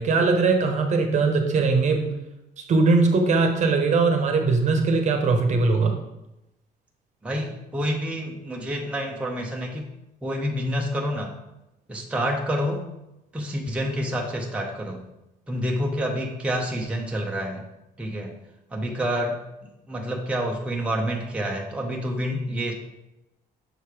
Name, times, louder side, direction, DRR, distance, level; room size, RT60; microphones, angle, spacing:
voice 1, 0.0-2.2 2.6-6.0, right 3 dB, 45° right, 4 dB, 0.9 m, -20 dB
voice 2, 7.2-9.9 10.2-11.3 11.9-12.9 13.3-15.0 15.5-17.6 18.0-18.3 18.7-19.4 19.9-22.7, equal, 5° right, -1 dB, 0.7 m, -28 dB
6.6 x 3.2 x 4.8 m, 0.91 s
cardioid pair, 110°, 17 cm